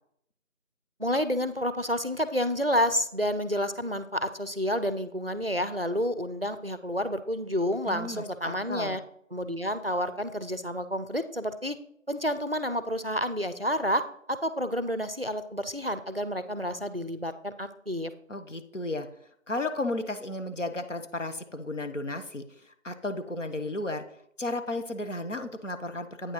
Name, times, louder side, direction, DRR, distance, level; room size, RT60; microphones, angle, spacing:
voice 1, 1.0-9.0 9.3-11.8 12.1-14.0 14.3-18.1, equal, 50° right, 12 dB, 0.5 m, -29 dB
voice 2, 7.8-9.0 18.3-19.1 19.5-24.0 24.4-26.3, left 2 dB, 65° left, 7 dB, 1.0 m, -34 dB
8.7 x 5.1 x 4.6 m, 0.69 s
figure-of-eight pair, 175°, 40 cm